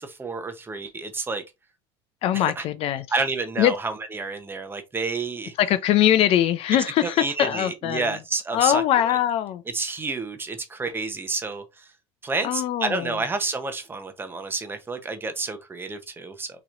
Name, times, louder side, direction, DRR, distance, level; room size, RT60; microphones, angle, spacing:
voice 1, 0.0-1.4 2.3-2.6 3.1-5.5 7.0-9.2 9.7-11.9 12.2-16.6, right 3 dB, 15° right, 0.8 m, -30 dB
voice 2, 2.2-3.0 3.6-3.7 5.6-8.2 8.5-9.6 12.4-13.1, left 11 dB, 50° left, 0.6 m, -22 dB
6.0 x 3.1 x 2.5 m
supercardioid pair, 120°, 13 cm